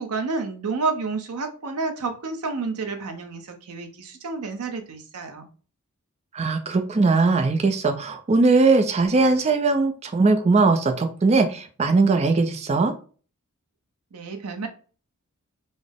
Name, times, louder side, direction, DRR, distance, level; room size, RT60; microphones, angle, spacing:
voice 1, 0.0-5.5 14.1-14.7, right 4 dB, 80° right, 6 dB, 0.7 m, -30 dB
voice 2, 6.3-12.9, right 3 dB, 30° right, 7 dB, 0.4 m, -20 dB
3.9 x 2.0 x 3.4 m, 0.38 s
head